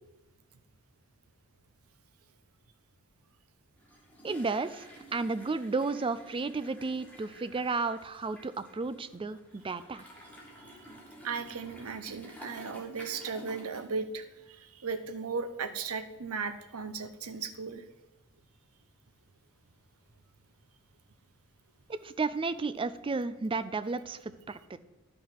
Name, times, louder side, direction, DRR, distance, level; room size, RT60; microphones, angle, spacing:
sound 1, 3.8-14.0 14.2-14.5 15.2-15.3 15.6-15.7 22.0-22.1, equal, 5° left, 1.8 m, -52 dB
voice 1, 4.2-10.0 21.9-24.8, right 4 dB, 25° right, 13 dB, 0.4 m, -33 dB
voice 2, 11.2-17.8, right 5 dB, 75° right, 10 dB, 0.8 m, -36 dB
11.0 x 5.5 x 5.9 m, 1.0 s
head